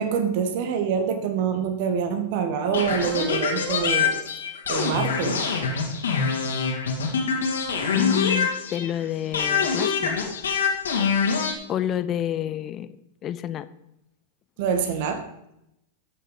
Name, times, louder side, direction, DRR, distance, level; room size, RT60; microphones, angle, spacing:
voice 1, 0.0-4.2 4.7-5.4 14.6-15.3, right 6 dB, 60° right, 6 dB, 1.8 m, -25 dB
sound 1, 2.7-9.0 9.3-11.5, left 5 dB, 85° left, 2.7 m, -25 dB
voice 2, 7.9-10.2 11.7-12.9 13.2-13.7, left 11 dB, 35° left, 13 dB, 0.9 m, -28 dB
14.0 x 6.6 x 5.1 m, 0.83 s
hypercardioid pair, 105°, 0 cm